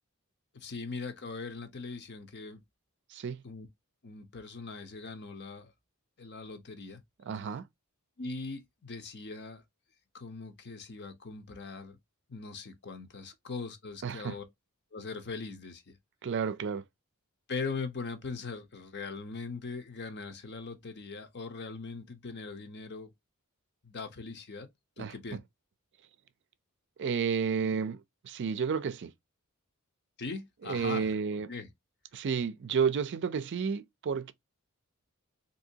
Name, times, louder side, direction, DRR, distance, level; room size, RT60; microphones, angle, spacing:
voice 1, 0.5-2.6 3.4-3.7 4.0-5.7 6.2-7.0 8.2-9.6 10.1-12.0 12.3-14.4 14.9-16.0 17.5-23.1 23.8-24.7 25.0-25.4 30.2-31.1 31.5-31.7, left 4 dB, 50° left, 0.8 m, -40 dB
voice 2, 3.1-3.4 7.3-7.7 14.0-14.4 16.2-16.8 25.0-25.1 27.0-29.1 30.6-31.5 32.1-34.3, right 6 dB, 55° right, 0.4 m, -31 dB
3.7 x 2.7 x 2.7 m
head